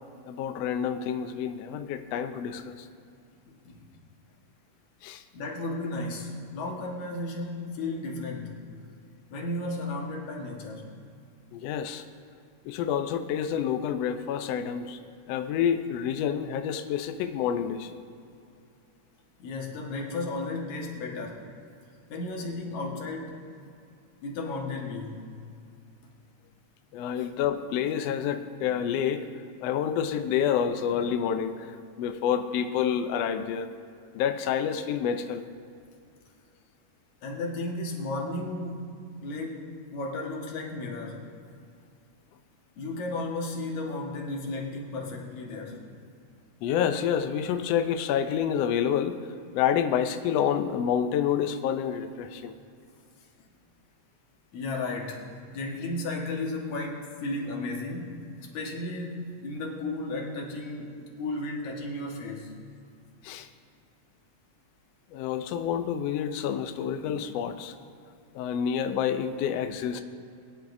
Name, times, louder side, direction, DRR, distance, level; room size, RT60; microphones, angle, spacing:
voice 1, 0.3-2.8 5.0-5.2 11.5-12.0 12.6-15.0 15.3-17.9 26.9-29.3 29.6-33.7 34.1-35.4 46.6-49.2 49.5-52.5 63.2-63.5 65.1-67.7 68.3-70.0, left 8 dB, 90° left, 7 dB, 1.4 m, -28 dB
voice 2, 3.5-3.8 5.3-8.7 9.3-10.9 19.4-21.5 22.1-23.4 24.2-25.3 37.2-38.9 39.2-41.3 42.8-45.9 53.4-53.5 54.5-55.3 55.5-62.5, left 2 dB, 70° left, -1 dB, 2.8 m, -34 dB
21.5 x 10.0 x 2.6 m, 2.5 s
omnidirectional pair, 3.6 m